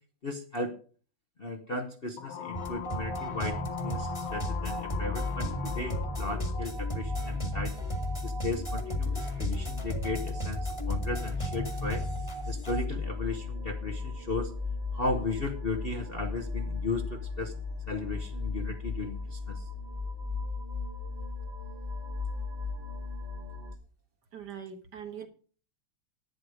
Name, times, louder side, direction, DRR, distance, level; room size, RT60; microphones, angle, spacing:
voice 1, 0.2-0.8 1.4-7.8 8.2-12.0 12.5-14.5 14.9-17.5 17.9-19.7, left 2 dB, 40° left, 3 dB, 0.9 m, -36 dB
sound 1, 2.2-6.7, left 10 dB, 80° left, 1.6 m, -40 dB
sound 2, 2.5-12.8, right 1 dB, 15° left, 1.7 m, -36 dB
sound 3, 4.3-23.7, left 4 dB, 25° right, 1.4 m, -36 dB
voice 2, 24.3-25.3, right 8 dB, 55° right, 6 dB, 1.8 m, -42 dB
11.0 x 9.7 x 4.9 m, 0.41 s
omnidirectional pair, 2.2 m